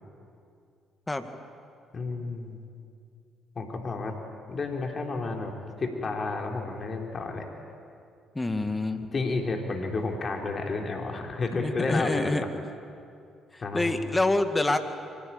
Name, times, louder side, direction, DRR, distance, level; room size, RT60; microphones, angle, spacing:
voice 1, 1.9-2.6 3.6-4.1 4.5-5.5 5.8-7.5 9.1-12.4 13.6-14.0, left 3 dB, 40° left, 2 dB, 3.9 m, -31 dB
voice 2, 8.4-9.0 11.5-12.4 13.5-14.8, left 2 dB, 20° left, 8 dB, 2.0 m, -27 dB
24.5 x 16.0 x 8.9 m, 2.4 s
hypercardioid pair, 50°, 0 cm